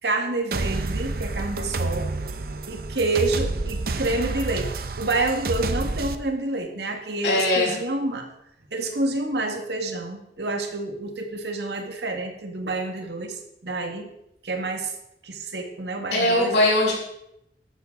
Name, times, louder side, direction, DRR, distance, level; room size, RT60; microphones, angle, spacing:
voice 1, 0.0-2.1 2.7-4.7 5.0-8.3 8.7-14.1 14.4-14.9 15.2-16.5, right 2 dB, 75° right, 4 dB, 1.9 m, -28 dB
sound 1, 0.5-6.1, right 3 dB, 55° right, 0.7 m, -29 dB
voice 2, 7.2-7.7 16.1-16.9, left 1 dB, 90° left, -10 dB, 5.1 m, -20 dB
13.5 x 11.5 x 3.9 m, 0.81 s
head